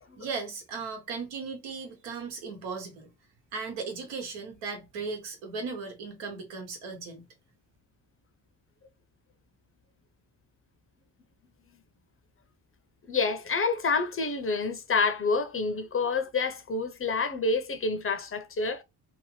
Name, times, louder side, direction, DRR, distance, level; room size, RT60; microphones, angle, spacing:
voice 1, 0.2-3.1 3.5-7.3, right 4 dB, 80° right, 1.2 m, -37 dB
voice 2, 13.1-18.8, left 4 dB, 30° left, 0.6 m, -28 dB
2.8 x 2.4 x 3.1 m
hypercardioid pair, 55°, 46 cm